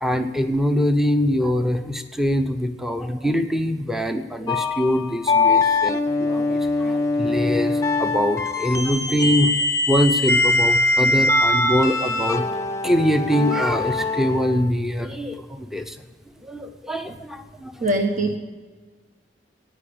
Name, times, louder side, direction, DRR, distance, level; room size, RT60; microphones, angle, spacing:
voice 1, 0.0-9.5 9.9-12.5 12.8-16.0 16.4-17.8, equal, ahead, 7 dB, 0.8 m, -23 dB
sound 1, 4.5-14.7, left 2 dB, 20° left, 1.1 m, -22 dB
voice 2, 17.8-18.4, right 1 dB, 45° right, 2 dB, 1.3 m, -22 dB
15.0 x 10.0 x 8.7 m, 1.4 s
head